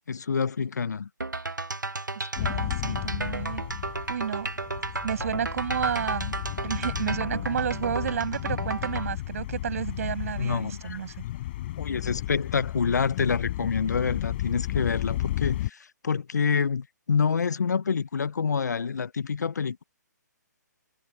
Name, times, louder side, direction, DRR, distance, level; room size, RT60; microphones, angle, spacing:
voice 1, 0.1-1.1 10.4-11.0 11.8-19.8, left 6 dB, 65° left, 1.1 m, -27 dB
sound 1, 1.2-9.1, right 2 dB, 85° right, 1.6 m, -33 dB
voice 2, 2.2-3.6 4.1-4.5 5.0-6.4 6.6-11.1, right 8 dB, 50° right, 7.5 m, -31 dB
sound 2, 2.4-15.7, left 15 dB, 35° left, 5.3 m, -33 dB
figure-of-eight pair, 135°, 10 cm